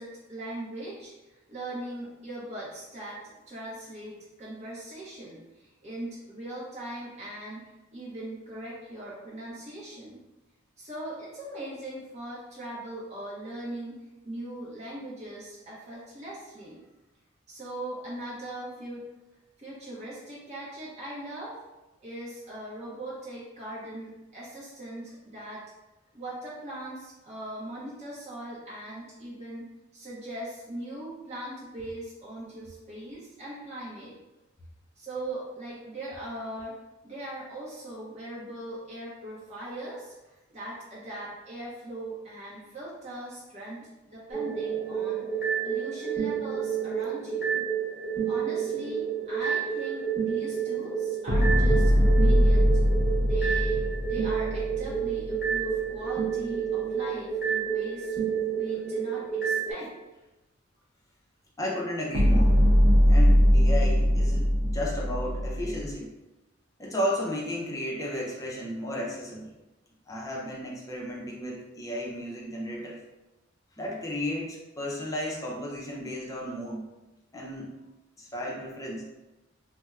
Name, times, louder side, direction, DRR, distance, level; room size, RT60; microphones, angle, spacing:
voice 1, 0.0-7.6 7.9-10.2 10.8-16.9 17.5-19.0 19.6-21.6 22.0-25.6 26.1-34.2 35.0-36.8 37.0-45.3 45.6-47.7 48.3-52.8 53.2-58.2 58.5-59.9, right 1 dB, 35° right, -7 dB, 0.7 m, -40 dB
sound 1, 44.3-59.7, right 7 dB, 5° right, 1.1 m, -30 dB
sound 2, 51.3-55.6 62.1-65.9, equal, 85° right, 0.8 m, -21 dB
voice 2, 61.6-62.6 63.1-66.1 66.8-69.5 70.1-73.0 73.8-76.8 77.3-77.8 78.2-79.0, left 1 dB, 15° left, -3 dB, 0.5 m, -33 dB
4.2 x 2.1 x 2.3 m, 1.0 s
head